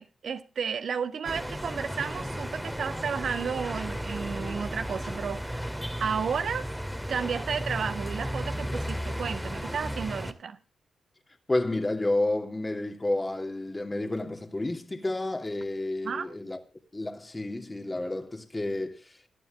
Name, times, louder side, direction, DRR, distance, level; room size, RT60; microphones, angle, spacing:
voice 1, 0.0-5.7 6.0-6.7 7.1-10.6 16.0-16.3, right 6 dB, 65° right, 1.8 m, -32 dB
sound 1, 1.2-10.3, equal, ahead, 2.3 m, -34 dB
voice 2, 11.5-16.6 16.9-19.3, left 2 dB, 25° left, 2.8 m, -30 dB
18.5 x 12.0 x 3.7 m
supercardioid pair, 50°, 0 cm